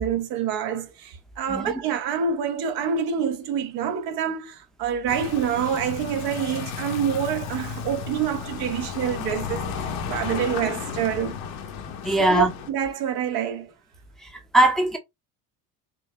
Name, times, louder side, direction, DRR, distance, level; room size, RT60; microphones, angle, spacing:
voice 1, 0.0-11.4 12.2-13.7, right 8 dB, 70° right, 1.2 m, -27 dB
voice 2, 1.5-1.8 12.0-12.5 14.2-15.0, right 1 dB, ahead, 0.7 m, -21 dB
sound 1, 5.1-12.7, left 6 dB, 85° left, 1.4 m, -33 dB
6.0 x 2.1 x 3.1 m
cardioid pair, 150°, 37 cm